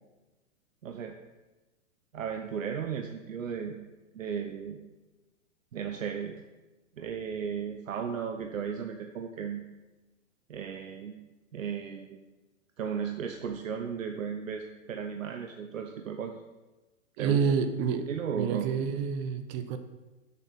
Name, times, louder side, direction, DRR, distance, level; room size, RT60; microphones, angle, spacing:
voice 1, 0.8-1.2 2.1-3.8 4.1-4.8 5.7-6.3 7.0-9.7 10.5-11.2 11.5-12.2 12.8-16.4 17.2-17.4 18.1-18.7, right 7 dB, 80° right, 4 dB, 0.9 m, -35 dB
voice 2, 17.2-19.8, right 6 dB, 35° right, 9 dB, 0.9 m, -29 dB
7.2 x 6.7 x 5.6 m, 1.1 s
hypercardioid pair, 125°, 39 cm